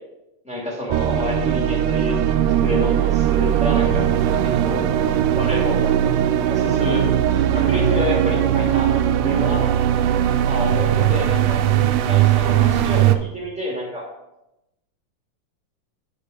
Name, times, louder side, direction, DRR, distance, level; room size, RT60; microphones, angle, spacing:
voice 1, 0.4-4.1 4.4-4.8 5.3-6.1 6.5-7.1 7.5-9.7 10.4-11.6 12.1-14.1, left 1 dB, 5° right, -4 dB, 1.7 m, -28 dB
sound 1, 0.9-13.2, right 10 dB, 85° right, 2.1 m, -19 dB
10.0 x 5.2 x 5.1 m, 0.92 s
omnidirectional pair, 3.7 m